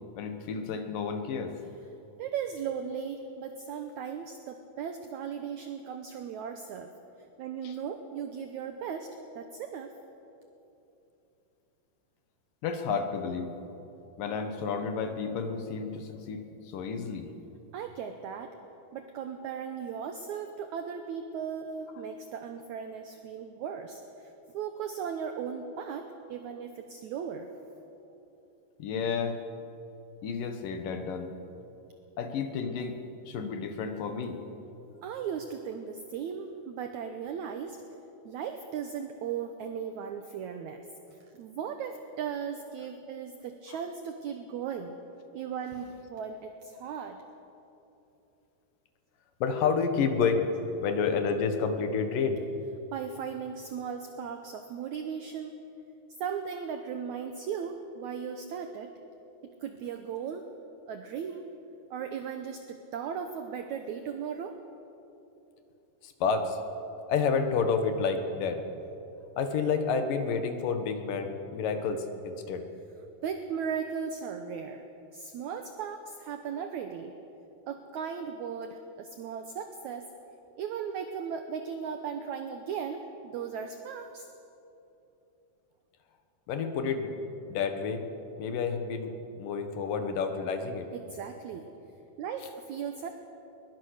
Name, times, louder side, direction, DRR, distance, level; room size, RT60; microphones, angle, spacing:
voice 1, 0.2-1.5 7.6-7.8 12.6-13.5 14.2-17.3 28.8-29.4 30.2-31.3 32.2-34.4 49.4-50.5 50.8-52.4 66.0-66.6 67.1-68.6 69.4-72.7 86.5-87.1 87.5-88.0 88.4-89.1 89.4-90.9, left 5 dB, 65° left, 6 dB, 2.9 m, -30 dB
voice 2, 2.2-6.9 7.4-9.1 9.4-9.9 17.7-18.6 18.9-27.5 35.0-37.8 38.2-45.0 45.3-47.2 52.9-55.6 56.2-58.9 59.6-60.5 60.9-61.5 61.9-64.6 73.2-74.9 75.1-77.1 77.7-80.1 80.6-84.3 90.9-91.7 92.2-93.1, right 7 dB, 75° right, 6 dB, 1.8 m, -37 dB
22.0 x 22.0 x 6.5 m, 2.9 s
omnidirectional pair, 4.5 m